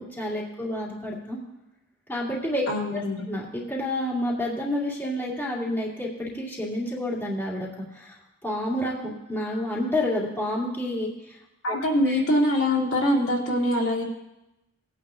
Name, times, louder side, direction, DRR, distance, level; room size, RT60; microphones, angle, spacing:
voice 1, 0.0-1.4 2.1-2.6 2.9-3.0 3.3-11.4 11.7-11.8 12.0-12.2, left 1 dB, 10° left, -6 dB, 2.4 m, -29 dB
voice 2, 2.7-3.2 11.6-14.0, left 1 dB, 65° left, -4 dB, 2.5 m, -23 dB
19.0 x 9.3 x 2.5 m, 0.91 s
head